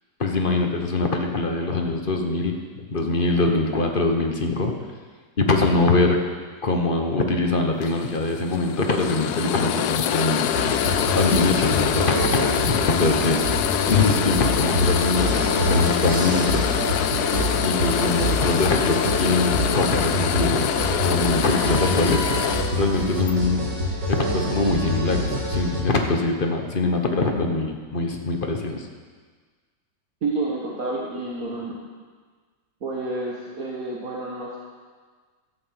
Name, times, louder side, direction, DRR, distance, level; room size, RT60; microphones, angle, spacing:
voice 1, 0.2-4.7 5.4-6.2 6.6-10.5 11.1-13.4 13.9-16.6 17.6-20.7 21.0-22.4 22.7-23.7 24.1-28.9, left 3 dB, 35° left, 3 dB, 1.2 m, -23 dB
sound 1, 7.8-23.3, left 10 dB, 70° left, 1.1 m, -25 dB
sound 2, 10.5-25.8, equal, 80° right, 2.6 m, -26 dB
voice 2, 30.2-31.8 32.8-34.6, right 2 dB, 55° right, -3 dB, 1.8 m, -29 dB
13.0 x 8.0 x 7.7 m, 1.5 s
omnidirectional pair, 1.9 m